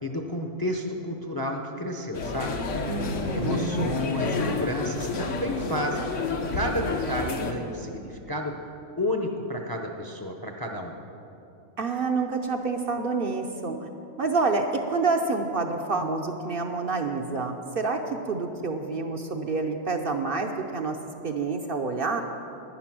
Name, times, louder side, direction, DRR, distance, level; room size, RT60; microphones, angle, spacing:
voice 1, 0.0-2.5 3.0-8.5 9.0-11.0, left 1 dB, 25° left, 3 dB, 0.6 m, -31 dB
sound 1, 2.1-7.5, left 3 dB, 70° left, 1.2 m, -29 dB
voice 2, 2.8-3.8 11.8-13.9 14.2-21.0 21.2-22.2, right 4 dB, 55° right, 4 dB, 0.8 m, -28 dB
11.0 x 10.0 x 6.0 m, 2.8 s
omnidirectional pair, 1.3 m